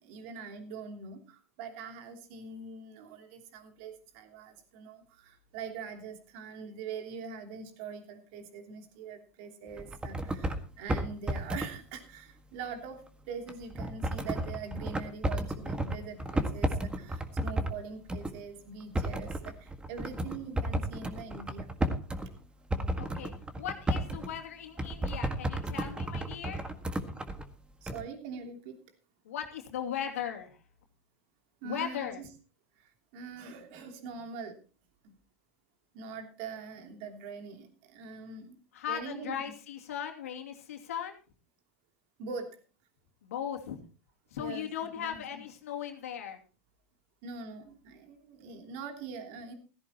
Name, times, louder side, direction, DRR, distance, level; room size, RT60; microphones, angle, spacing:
voice 1, 0.0-21.7 27.8-28.8 31.6-32.3 32.8-34.6 35.0-35.1 35.9-38.6 38.9-39.4 42.2-42.5 44.4-45.5 47.2-49.5, right 5 dB, 60° right, 4 dB, 3.0 m, -43 dB
sound 1, 9.8-10.6 10.9-11.7 13.5-17.8 18.1-18.4 18.8-22.3 22.7-24.3 24.8-27.5 27.9-28.0, right 1 dB, 10° right, 1.7 m, -33 dB
voice 2, 23.0-23.3 23.6-26.7 29.3-30.6 31.6-32.2 38.7-41.2 43.2-43.8 44.3-46.4, left 9 dB, 80° left, 2 dB, 2.6 m, -38 dB
16.0 x 14.5 x 3.0 m, 0.36 s
hypercardioid pair, 100°, 8 cm